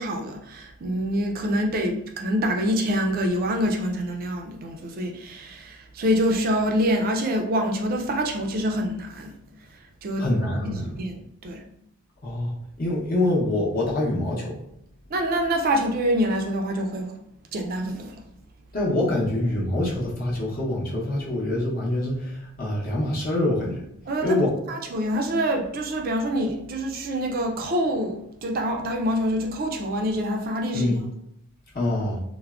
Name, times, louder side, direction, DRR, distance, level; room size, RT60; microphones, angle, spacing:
voice 1, 0.0-9.4 10.0-10.3 10.7-11.6 15.1-17.1 17.5-18.2 24.1-24.4 24.7-30.9, equal, 40° right, 0.3 m, -26 dB
voice 2, 10.2-11.0 12.2-14.6 18.7-23.8 24.2-24.5 30.7-31.0 31.7-32.2, left 1 dB, 40° left, 0.7 m, -25 dB
3.4 x 2.0 x 2.3 m
head